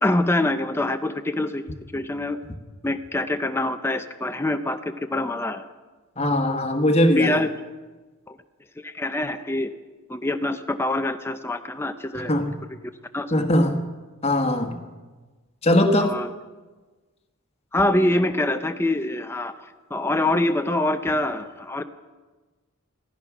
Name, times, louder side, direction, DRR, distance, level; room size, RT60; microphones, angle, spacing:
voice 1, 0.0-1.6 1.9-2.4 2.8-5.6 7.2-7.5 8.3-8.4 8.8-9.7 10.1-12.4 12.7-12.8 13.1-13.3 16.0-16.3 17.7-21.8, left 1 dB, 10° left, 7 dB, 0.5 m, -25 dB
voice 2, 6.2-7.4 12.2-12.5 13.3-13.8 14.2-14.8 15.6-16.1, left 1 dB, 30° left, 5 dB, 1.3 m, -20 dB
15.5 x 14.5 x 6.0 m, 1.3 s
head